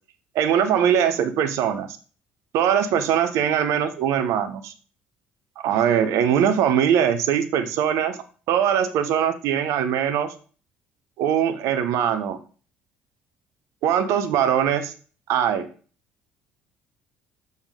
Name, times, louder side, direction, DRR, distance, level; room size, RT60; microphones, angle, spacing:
voice 1, 0.3-1.9 2.5-4.7 5.6-8.2 8.5-10.3 11.2-12.4 13.8-14.9 15.3-15.7, right 9 dB, 65° right, 10 dB, 0.9 m, -21 dB
7.1 x 4.0 x 5.1 m, 0.40 s
hypercardioid pair, 50°, 6 cm